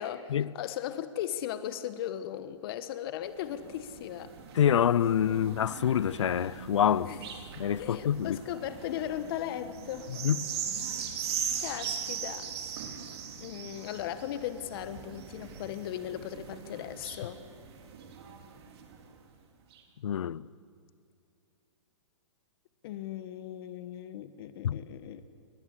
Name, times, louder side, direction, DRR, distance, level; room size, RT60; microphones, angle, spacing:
voice 1, 0.0-4.3 7.1-7.3 7.8-10.2 10.9-11.1 11.6-12.5 13.4-17.4 22.8-25.3, left 11 dB, 50° left, 1.4 m, -37 dB
sound 1, 3.3-19.1 19.7-19.8, right 7 dB, 60° right, 4.2 m, -40 dB
voice 2, 4.5-7.1 7.6-8.4 10.1-10.4 20.0-20.5 24.6-24.8, left 9 dB, 75° left, 0.7 m, -26 dB
29.5 x 21.0 x 8.2 m
hypercardioid pair, 125°, 16 cm